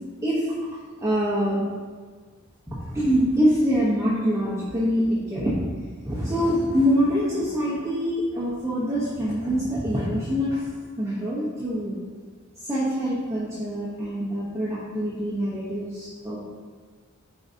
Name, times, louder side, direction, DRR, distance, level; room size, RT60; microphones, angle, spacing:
voice 1, 1.0-1.6 2.7-5.6 6.0-10.6 11.0-11.9 12.6-16.4, equal, 15° right, -9 dB, 1.0 m, -24 dB
8.8 x 4.7 x 2.8 m, 1.5 s
head